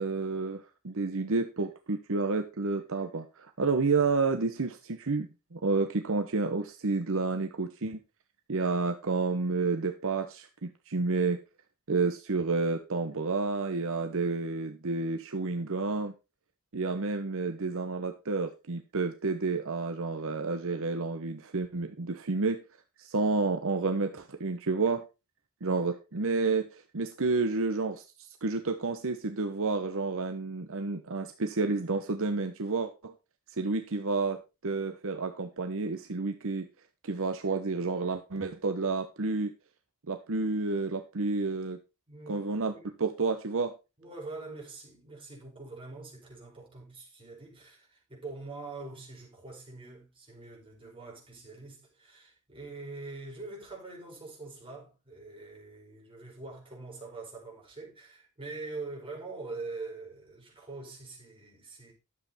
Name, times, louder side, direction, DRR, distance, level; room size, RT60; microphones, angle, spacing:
voice 1, 0.0-8.0 8.5-11.4 11.9-16.1 16.7-22.6 23.0-25.1 25.6-33.1 33.6-36.7 37.0-39.5 40.1-41.8 42.3-42.7 43.0-43.7, right 3 dB, 65° right, 1.0 m, -30 dB
voice 2, 42.1-42.5 42.7-43.0 44.0-61.9, right 3 dB, 25° right, 5.4 m, -44 dB
12.0 x 7.7 x 4.2 m
head